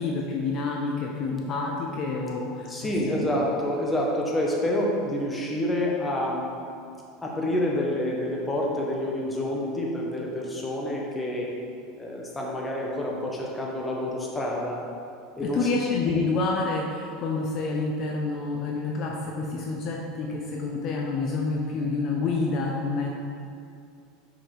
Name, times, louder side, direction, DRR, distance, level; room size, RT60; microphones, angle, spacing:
voice 1, 0.0-2.9 3.2-3.3 15.4-23.1, left 3 dB, 50° left, -1 dB, 0.6 m, -28 dB
voice 2, 2.7-6.4 7.2-11.5 12.0-14.8 15.4-15.7, left 1 dB, 15° left, -2 dB, 1.1 m, -28 dB
5.8 x 4.8 x 3.4 m, 2.4 s
supercardioid pair, 100°, 0 cm